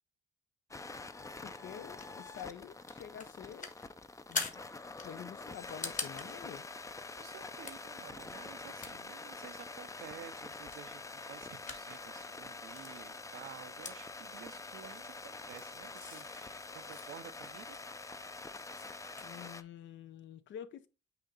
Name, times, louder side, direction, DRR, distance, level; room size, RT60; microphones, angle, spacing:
sound 1, 0.7-19.6, left 3 dB, 15° left, 0.5 m, -46 dB
voice 1, 1.4-3.7 4.3-4.7 5.0-6.7 19.2-20.9, left 9 dB, 70° left, 0.7 m, -48 dB
sound 2, 1.5-19.4, left 4 dB, 40° left, 1.5 m, -47 dB
voice 2, 7.2-11.0 11.3-17.8 18.9-19.2, right 10 dB, 85° right, 0.7 m, -52 dB
8.5 x 2.8 x 3.9 m
cardioid pair, 90°, 20 cm